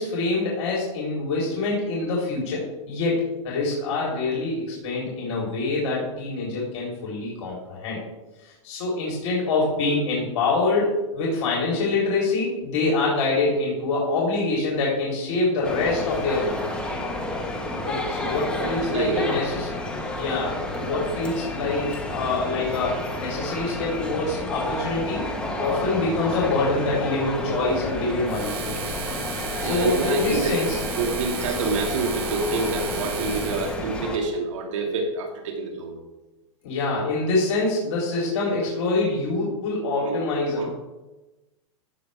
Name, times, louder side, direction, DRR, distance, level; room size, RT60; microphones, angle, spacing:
voice 1, 0.0-8.0 8.4-16.6 17.7-19.7 20.2-25.3 25.6-28.8 29.6-30.8 36.6-40.7, left 3 dB, 60° left, -4 dB, 3.7 m, -25 dB
sound 1, 15.6-34.2, left 1 dB, 5° left, 1.4 m, -31 dB
voice 2, 18.6-19.3 29.6-30.6 31.0-35.9 40.0-40.2 40.6-40.7, right 3 dB, 70° right, 2 dB, 2.0 m, -27 dB
sound 2, 28.3-33.8, right 6 dB, 45° right, 2.7 m, -34 dB
15.5 x 6.6 x 3.5 m, 1.1 s
hypercardioid pair, 145°, 17 cm